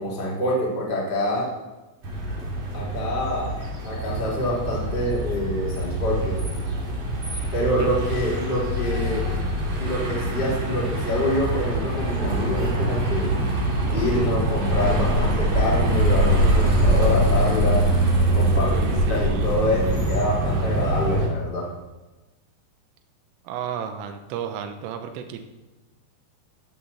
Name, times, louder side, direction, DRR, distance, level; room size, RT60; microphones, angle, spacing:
voice 1, 0.0-1.5 2.7-3.5 3.8-6.4 7.5-9.3 9.8-13.3 13.9-17.9 18.3-21.7, left 1 dB, 15° left, -5 dB, 2.0 m, -26 dB
sound 1, 2.0-21.3, right 1 dB, 40° right, 3.8 m, -23 dB
voice 2, 18.5-19.6 23.5-25.4, right 8 dB, 80° right, 6 dB, 3.5 m, -33 dB
15.0 x 5.2 x 7.0 m, 1.1 s
omnidirectional pair, 6.0 m